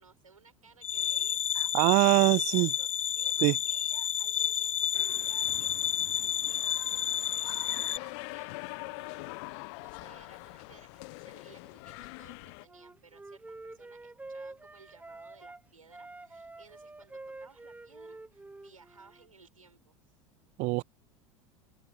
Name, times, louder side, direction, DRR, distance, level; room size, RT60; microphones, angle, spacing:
voice 1, 0.0-9.5 9.8-20.0, right 5 dB, 80° right, 7.3 m, -58 dB
sound 1, 0.8-8.0, left 9 dB, 75° left, 1.1 m, -30 dB
voice 2, 1.7-2.7 3.4-3.6 20.6-20.8, right 27 dB, 45° right, 0.6 m, -23 dB
sound 2, 4.9-12.7, left 30 dB, 55° left, 1.1 m, -44 dB
Wind instrument woodwind instrument, 12.7-15.6 15.9-19.3, right 2 dB, 10° right, 1.4 m, -47 dB
open air
figure-of-eight pair, 75°, 17 cm